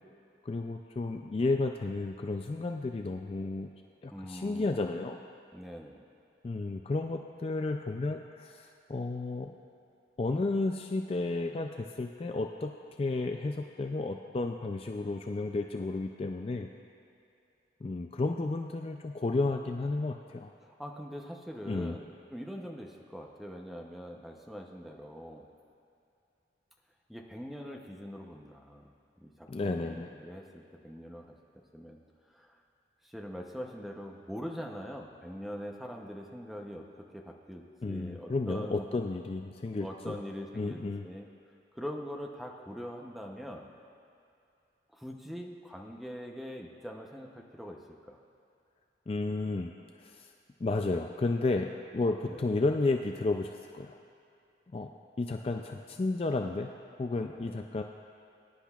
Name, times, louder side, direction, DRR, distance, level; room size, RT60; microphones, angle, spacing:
voice 1, 0.4-3.7 4.0-5.2 6.4-9.6 10.2-16.7 17.8-20.5 21.7-22.0 29.5-30.1 37.8-40.2 40.6-41.0 49.1-49.7 50.0-50.3 50.6-54.0 54.7-54.9 55.2-56.7 57.0-57.8, left 3 dB, 35° left, 4 dB, 0.3 m, -32 dB
voice 2, 4.1-4.7 5.5-6.0 20.6-25.4 27.1-28.9 29.2-32.0 32.3-32.6 33.0-38.8 39.8-41.3 41.7-43.7 44.9-47.8 48.1-48.2 52.3-52.4 57.3-57.5, equal, ahead, 1 dB, 0.7 m, -43 dB
20.0 x 10.0 x 2.4 m, 2.6 s
head